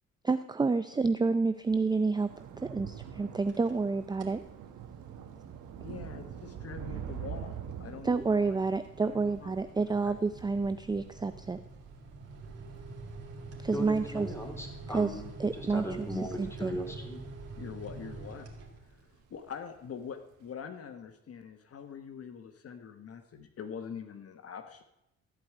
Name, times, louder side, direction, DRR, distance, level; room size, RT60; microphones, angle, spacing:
voice 1, 0.2-2.3 2.6-4.4 8.0-11.6 13.6-14.3 14.9-16.8, right 4 dB, 15° right, 10 dB, 0.5 m, -29 dB
Thunder / Rain, 1.6-18.2 18.6-19.0 19.3-19.5, right 8 dB, 80° right, 1.4 m, -46 dB
sound 1, 3.3-3.9 4.1-4.5 4.9-19.2, right 3 dB, 55° right, 2.7 m, -47 dB
voice 2, 5.8-7.5 7.8-8.6 9.0-9.5 10.0-10.2 17.6-18.5 18.8-24.8, left 7 dB, 50° left, 7 dB, 1.1 m, -44 dB
voice 3, 13.7-15.2 15.5-17.2, equal, 10° left, 3 dB, 3.1 m, -37 dB
14.5 x 4.9 x 9.2 m, 0.85 s
cardioid pair, 90°, 30 cm